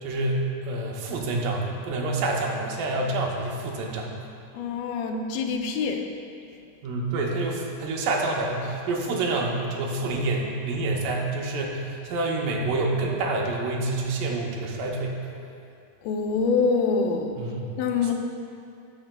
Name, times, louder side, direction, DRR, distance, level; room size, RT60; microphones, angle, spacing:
voice 1, 0.0-4.1 6.8-15.2 17.4-17.7 18.0-18.1, right 2 dB, 75° right, 0 dB, 2.4 m, -27 dB
voice 2, 4.5-6.1 16.0-17.4 17.8-18.1, left 5 dB, 85° left, 3 dB, 2.5 m, -25 dB
16.0 x 6.7 x 2.2 m, 2.5 s
omnidirectional pair, 4.1 m